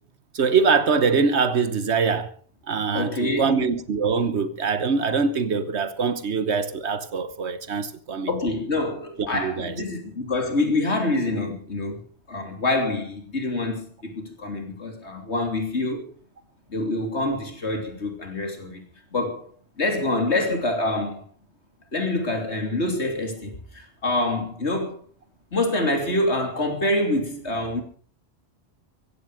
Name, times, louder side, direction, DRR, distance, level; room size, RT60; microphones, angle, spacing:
voice 1, 0.3-2.4 2.7-8.3 9.2-9.7, right 5 dB, 80° right, 1.3 m, -23 dB
voice 2, 2.9-3.6 8.3-12.0 12.3-16.1 16.7-18.8 19.1-19.5 19.8-21.2 21.9-25.0 25.5-27.8, left 2 dB, 80° left, 3.6 m, -26 dB
16.0 x 15.0 x 5.0 m
omnidirectional pair, 1.1 m